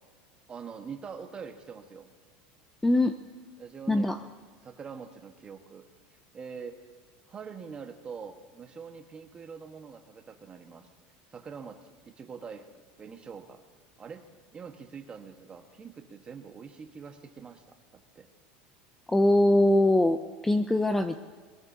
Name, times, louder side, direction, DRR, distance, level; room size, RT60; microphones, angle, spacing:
voice 1, 0.5-2.1 3.6-4.2 4.6-5.9 6.3-6.8 7.3-10.9 11.3-11.8 12.1-12.7 13.0-13.6 14.0-14.3 14.5-18.3, right 6 dB, 25° right, 5 dB, 1.4 m, -44 dB
voice 2, 2.8-3.2 3.9-4.2 19.1-21.2, left 1 dB, 5° left, 9 dB, 0.5 m, -22 dB
22.0 x 18.5 x 2.8 m, 1.6 s
supercardioid pair, 140°, 4 cm